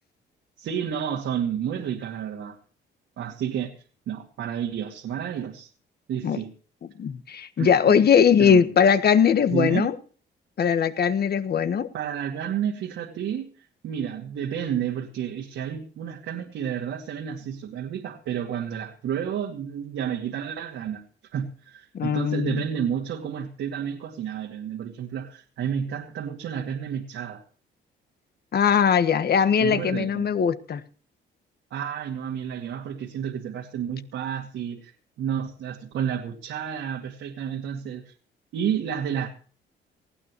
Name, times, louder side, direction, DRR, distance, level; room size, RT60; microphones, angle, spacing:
voice 1, 0.6-2.6 3.2-3.7 4.1-5.7 6.1-6.5 7.6-8.0 8.4-8.6 9.5-9.9 10.8-11.1 11.9-13.5 13.8-21.0 21.3-27.4 29.6-30.3 31.7-34.9 35.2-38.1 38.5-39.3, right 8 dB, 80° right, 2.5 m, -31 dB
voice 2, 7.0-9.9 10.6-11.9 21.9-22.6 28.5-30.8, left 7 dB, 55° left, 1.5 m, -20 dB
19.5 x 15.5 x 3.1 m
cardioid pair, 90°, 20 cm